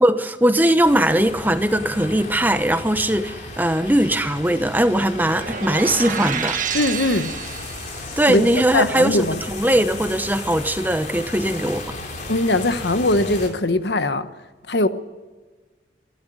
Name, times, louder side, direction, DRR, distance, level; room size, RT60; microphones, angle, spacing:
voice 1, 0.0-6.6 8.2-11.8, right 1 dB, 10° right, 0.9 m, -20 dB
sound 1, 0.8-13.5, left 2 dB, 40° left, 3.9 m, -35 dB
sound 2, 5.2-8.0, right 6 dB, 45° right, 1.6 m, -29 dB
voice 2, 6.7-7.3 8.3-9.4 12.3-14.3 14.7-14.9, left 2 dB, 65° left, 1.1 m, -20 dB
25.5 x 11.5 x 9.3 m
head